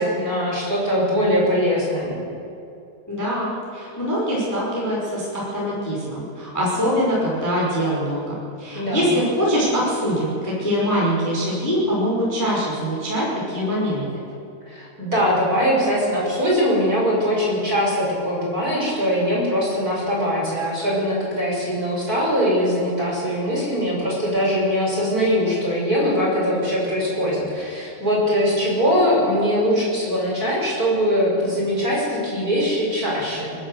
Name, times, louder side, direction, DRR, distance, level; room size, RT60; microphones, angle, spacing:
voice 1, 0.0-2.2 8.7-9.1 14.7-33.5, equal, 20° right, -5 dB, 6.2 m, -21 dB
voice 2, 3.1-14.0, equal, 5° left, -6 dB, 4.8 m, -23 dB
30.0 x 11.5 x 7.9 m, 2.7 s
omnidirectional pair, 5.5 m